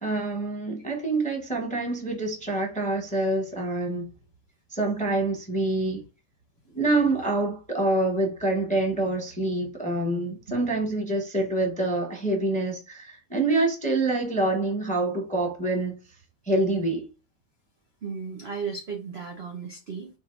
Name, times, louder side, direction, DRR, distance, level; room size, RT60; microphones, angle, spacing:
voice 1, 0.0-4.0 4.7-6.0 6.7-16.0 16.5-17.1, right 2 dB, 5° left, 0.7 m, -26 dB
voice 2, 18.0-20.1, right 5 dB, 60° right, 0.6 m, -35 dB
4.6 x 2.5 x 4.4 m
omnidirectional pair, 2.0 m